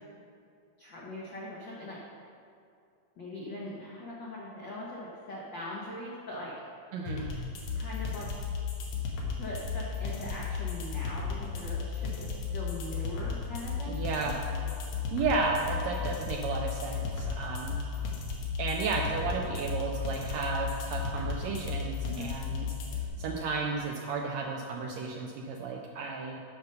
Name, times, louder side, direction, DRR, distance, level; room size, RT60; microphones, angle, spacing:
voice 1, 0.8-2.0 3.2-6.5 7.7-8.3 9.4-14.6 22.1-22.3, left 1 dB, 90° left, -5 dB, 1.0 m, -41 dB
voice 2, 6.9-7.3 13.9-14.5 15.1-17.8 18.6-26.4, right 4 dB, 85° right, 1 dB, 1.5 m, -33 dB
sound 1, 7.1-23.1, left 5 dB, 65° left, 2.4 m, -34 dB
8.7 x 5.4 x 6.6 m, 2.4 s
omnidirectional pair, 3.8 m